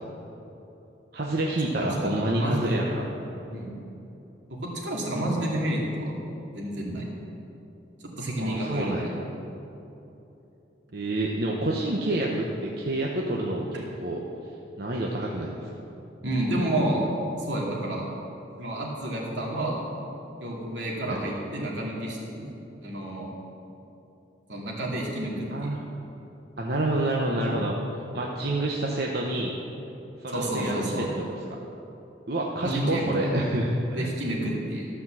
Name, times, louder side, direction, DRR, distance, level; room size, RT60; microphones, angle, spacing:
voice 1, 1.1-3.0 8.4-9.1 10.9-13.7 14.0-14.2 14.8-15.7 21.0-21.2 25.5-25.8 26.6-27.7 28.1-29.5 30.2-31.3 32.3-34.1 34.4-34.5, right 1 dB, 55° right, -2 dB, 0.9 m, -28 dB
voice 2, 1.7-2.8 3.5-3.7 4.6-6.1 6.5-7.0 8.2-9.1 16.2-17.0 17.4-18.1 18.6-19.8 20.4-22.5 22.8-23.3 24.5-25.7 30.3-31.1 32.6-33.3 33.9-34.9, right 1 dB, 80° right, -3 dB, 2.6 m, -29 dB
14.0 x 6.1 x 7.3 m, 3.0 s
head